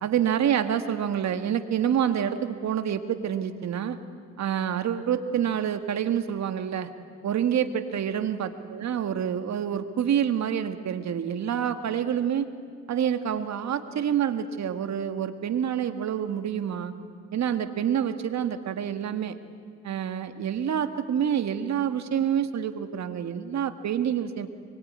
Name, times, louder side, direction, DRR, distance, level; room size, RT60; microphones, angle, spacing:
voice 1, 0.0-4.0 4.4-6.9 7.2-12.5 12.9-16.9 17.3-19.4 19.8-24.5, right 9 dB, 65° right, 9 dB, 1.9 m, -27 dB
24.5 x 23.0 x 9.7 m, 2.1 s
cardioid pair, 90°, 30 cm